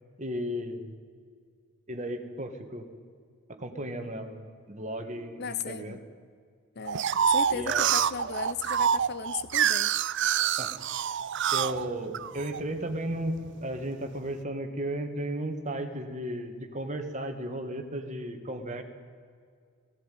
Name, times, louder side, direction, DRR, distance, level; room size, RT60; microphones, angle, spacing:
voice 1, 0.2-0.8 1.9-2.9 3.5-4.4 4.7-6.0 7.5-7.9 10.6-10.8 11.5-18.8, right 1 dB, 35° right, 5 dB, 1.9 m, -34 dB
voice 2, 5.4-6.0 6.8-9.9, left 6 dB, 50° left, 13 dB, 0.8 m, -36 dB
sound 1, 6.9-12.6 13.1-13.8, right 8 dB, 55° right, 0.5 m, -27 dB
17.5 x 16.5 x 9.4 m, 2.1 s
head